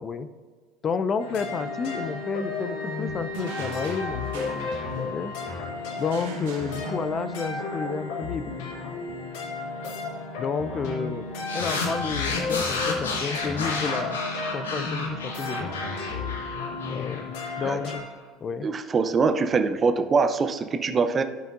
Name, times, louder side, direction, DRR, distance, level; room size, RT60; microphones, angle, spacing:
voice 1, 0.8-4.7 5.0-5.3 6.0-8.4 10.4-14.2 14.5-15.7 16.9-18.1 18.4-18.7, left 5 dB, 35° left, 12 dB, 0.4 m, -31 dB
sound 1, 1.2-18.0, left 3 dB, 60° left, 1.3 m, -33 dB
sound 2, 3.5-5.4 6.0-7.5, right 4 dB, 70° right, 1.3 m, -44 dB
sound 3, 11.5-18.0, left 3 dB, 75° left, 1.0 m, -31 dB
voice 2, 18.6-21.2, right 4 dB, 30° right, 9 dB, 0.6 m, -23 dB
12.5 x 5.7 x 2.5 m, 1.5 s
figure-of-eight pair, 65°, 0 cm